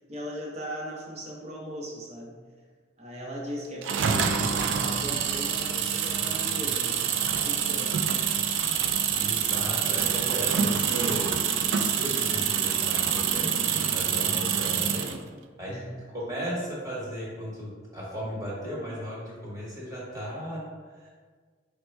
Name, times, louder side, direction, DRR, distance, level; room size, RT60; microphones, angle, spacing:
voice 1, 0.0-2.4 3.0-8.6 15.7-16.1, equal, 35° right, -2 dB, 0.7 m, -38 dB
sound 1, 3.8-15.2, right 7 dB, 75° right, 0.3 m, -26 dB
voice 2, 9.1-11.4 11.7-15.1 15.6-15.7 16.1-21.1, equal, 20° right, -6 dB, 1.2 m, -36 dB
4.1 x 2.2 x 4.5 m, 1.5 s
head